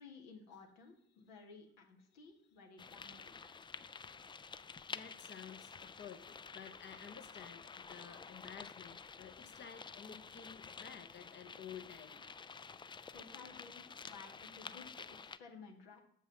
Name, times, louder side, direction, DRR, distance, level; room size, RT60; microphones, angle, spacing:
voice 1, 0.0-3.5 13.1-16.0, left 4 dB, 70° left, 2 dB, 1.5 m, -56 dB
sound 1, 2.8-15.4, left 5 dB, 15° left, 0.4 m, -51 dB
voice 2, 4.9-12.2 13.0-13.1, left 7 dB, 35° left, 7 dB, 0.9 m, -53 dB
7.4 x 5.6 x 7.3 m, 0.66 s
figure-of-eight pair, 45°, 32 cm